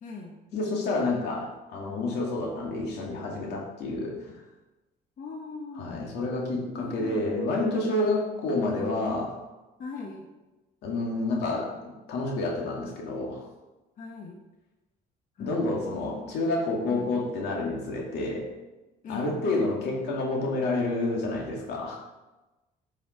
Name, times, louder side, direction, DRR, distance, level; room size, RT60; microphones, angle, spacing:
voice 1, 0.0-0.3 5.2-5.9 6.8-7.2 8.0-8.3 9.8-10.2 14.0-14.4 15.4-15.6 16.8-17.1 19.0-19.4, left 4 dB, 50° left, 1 dB, 1.2 m, -39 dB
voice 2, 0.5-4.3 5.8-9.3 10.8-13.5 15.4-18.5 19.1-22.0, left 2 dB, 80° left, -1 dB, 2.2 m, -29 dB
9.9 x 5.6 x 4.4 m, 1.1 s
cardioid pair, 110°, 17 cm